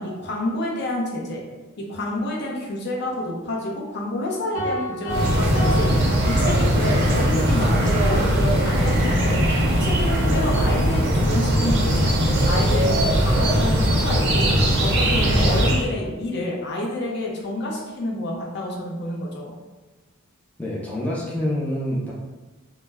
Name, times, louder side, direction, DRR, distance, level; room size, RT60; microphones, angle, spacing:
voice 1, 0.0-1.4 1.8-9.4 9.7-12.2 12.4-19.5, left 1 dB, 55° left, -2 dB, 0.6 m, -28 dB
sound 1, 4.5-7.0, equal, 90° left, 1.1 m, -30 dB
sound 2, 5.1-15.8, equal, 55° right, 0.5 m, -20 dB
voice 2, 20.6-22.1, left 1 dB, 5° left, -6 dB, 0.4 m, -26 dB
2.2 x 2.0 x 3.3 m, 1.2 s
head